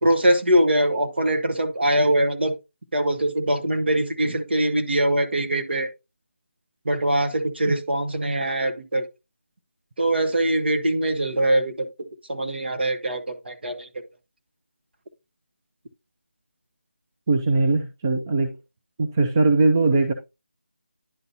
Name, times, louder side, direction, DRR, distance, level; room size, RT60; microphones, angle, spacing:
voice 1, 0.0-2.5 2.9-5.9 6.8-9.0 10.0-11.9 12.3-13.9, right 1 dB, 55° right, 1.2 m, -22 dB
voice 2, 17.3-18.5 19.0-20.1, right 3 dB, 15° right, 0.3 m, -20 dB
11.0 x 4.0 x 2.8 m
figure-of-eight pair, 170°, 7 cm